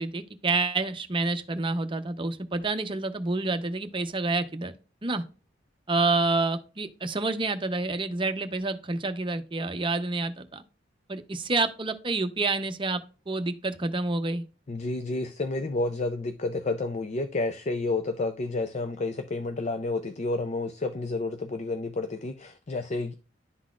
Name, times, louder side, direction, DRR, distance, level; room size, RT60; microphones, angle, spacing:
voice 1, 0.0-4.7 5.0-5.2 5.9-10.6 11.1-13.0 13.3-14.4, right 3 dB, 25° right, 0.7 m, -28 dB
voice 2, 14.7-23.1, left 2 dB, 40° left, 0.5 m, -30 dB
11.0 x 4.0 x 2.4 m
head